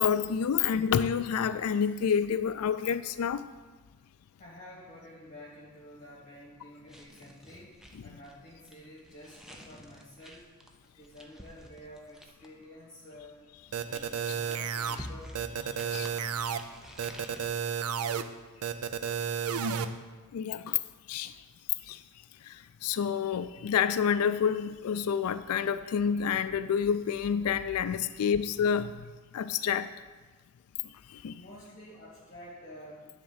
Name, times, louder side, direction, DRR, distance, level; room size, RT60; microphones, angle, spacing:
voice 1, 0.0-3.4 14.3-14.4 15.9-16.1 20.3-20.8 21.1-21.3 21.9-22.0 22.8-28.9 29.3-29.9 31.2-31.3, left 7 dB, 90° left, 11 dB, 0.4 m, -28 dB
voice 2, 4.4-10.5 10.9-13.4 13.8-15.8 28.0-28.4 31.3-33.1, left 1 dB, 35° left, -4 dB, 1.5 m, -50 dB
sound 1, 6.8-12.6 13.5-17.5, equal, ahead, 0.6 m, -49 dB
sound 2, 13.7-15.0 15.3-16.6 17.0-18.2 18.6-19.8, right 7 dB, 90° right, 0.5 m, -32 dB
10.0 x 3.8 x 7.1 m, 1.3 s
head